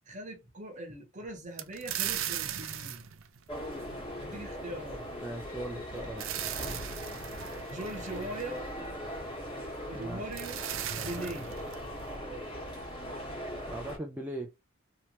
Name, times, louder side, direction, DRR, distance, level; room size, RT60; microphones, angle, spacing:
voice 1, 0.0-3.1 4.2-5.1 7.7-8.7 9.8-10.7 10.9-11.5 11.8-11.9, right 1 dB, 35° right, 0.9 m, -41 dB
sound 1, 1.6-4.3 5.8-8.9 10.0-10.1 10.3-12.1, right 10 dB, 65° right, 0.5 m, -38 dB
sound 2, 3.5-14.0, equal, 25° left, 1.4 m, -40 dB
voice 2, 5.2-6.3 9.9-10.2 13.7-14.5, right 1 dB, 10° right, 0.4 m, -39 dB
3.1 x 2.9 x 2.9 m
head